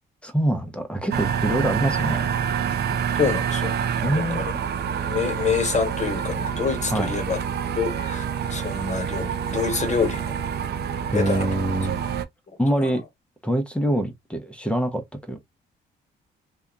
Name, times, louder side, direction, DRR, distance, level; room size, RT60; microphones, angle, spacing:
voice 1, 0.2-2.3 4.0-4.5 6.9-7.1 11.1-12.1 12.6-13.0 13.4-15.4, right 1 dB, 5° left, 0.7 m, -24 dB
sound 1, 1.1-12.2, right 8 dB, 55° right, 0.5 m, -27 dB
voice 2, 3.2-3.8 4.1-4.5 5.1-7.4 7.7-8.2 8.5-10.4 11.1-11.5 12.8-12.9, left 6 dB, 35° left, 1.1 m, -26 dB
2.8 x 2.3 x 2.3 m
cardioid pair, 90°, 20 cm